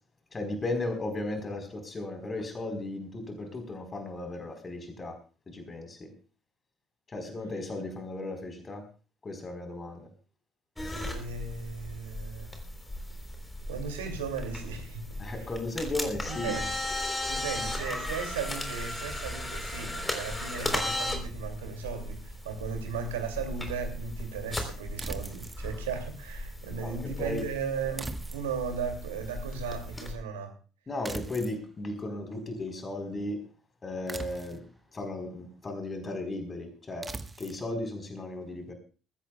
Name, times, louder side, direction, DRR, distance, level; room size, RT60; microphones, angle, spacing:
voice 1, 0.3-5.2 5.5-6.1 7.1-8.8 9.2-10.1 15.2-16.5 26.8-27.4 30.9-33.4 33.8-34.6 34.9-37.1 37.4-38.7, left 2 dB, 30° left, 4.3 m, -35 dB
sound 1, 10.8-30.1, left 1 dB, 15° left, 3.9 m, -36 dB
voice 2, 11.1-12.5 13.7-15.5 16.3-16.7 17.3-30.5, right 6 dB, 75° right, 2.6 m, -36 dB
sound 2, 25.0-25.6 28.0-28.7 31.0-31.6 34.1-34.7 37.0-37.6, right 3 dB, 20° right, 1.3 m, -40 dB
22.5 x 15.5 x 2.4 m
figure-of-eight pair, 50°, 0 cm